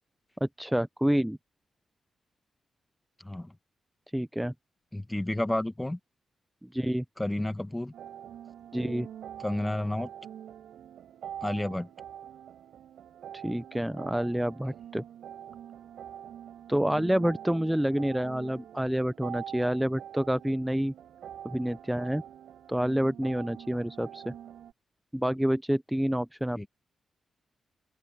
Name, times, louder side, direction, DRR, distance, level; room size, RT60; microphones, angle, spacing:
voice 1, 0.4-1.4 4.1-4.5 6.6-7.0 8.7-9.1 13.3-15.0 16.7-20.9 21.4-22.2 22.7-24.3 25.1-26.7, equal, 5° right, 0.5 m, -28 dB
voice 2, 4.9-6.0 7.2-7.9 9.4-10.1 11.4-11.9 26.6-26.7, left 1 dB, 15° left, 1.6 m, -31 dB
sound 1, 7.9-24.7, right 10 dB, 80° right, 6.0 m, -45 dB
open air
supercardioid pair, 55°, 0 cm